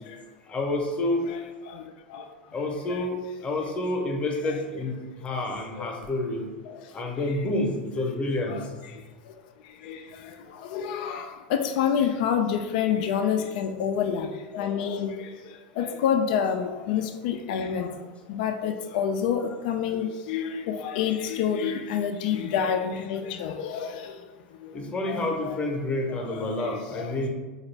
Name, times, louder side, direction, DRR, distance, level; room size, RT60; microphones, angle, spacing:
voice 1, 0.5-1.3 2.5-6.4 6.9-8.6 24.7-27.3, left 2 dB, 25° left, 1 dB, 0.8 m, -29 dB
voice 2, 10.7-15.3 15.8-18.0 18.3-24.1 25.1-25.7 26.2-27.1, left 8 dB, 65° left, 7 dB, 0.3 m, -28 dB
3.9 x 2.3 x 3.3 m, 1.3 s
hypercardioid pair, 100°, 5 cm